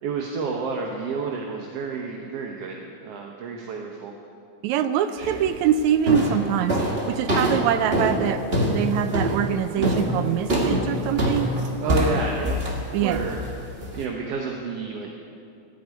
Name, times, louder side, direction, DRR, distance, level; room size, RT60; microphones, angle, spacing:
voice 1, 0.0-4.2 5.2-5.3 9.8-10.1 11.8-12.6 13.0-13.4 14.0-15.2, right 4 dB, 65° right, 1 dB, 1.9 m, -30 dB
voice 2, 4.6-11.5 12.9-13.3, right 9 dB, 80° right, 10 dB, 2.0 m, -24 dB
sound 1, 5.2-5.6 6.1-14.0, equal, 25° right, 1.3 m, -25 dB
14.5 x 8.7 x 9.5 m, 2.5 s
omnidirectional pair, 3.4 m